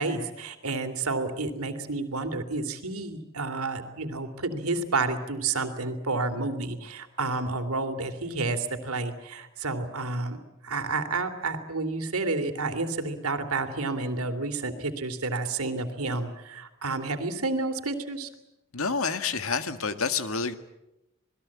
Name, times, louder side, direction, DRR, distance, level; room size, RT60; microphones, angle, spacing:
voice 1, 0.0-10.4 10.6-18.3, right 3 dB, 90° right, 9 dB, 2.9 m, -30 dB
voice 2, 18.7-20.5, left 5 dB, 75° left, 9 dB, 1.8 m, -28 dB
27.5 x 20.0 x 8.6 m, 0.91 s
head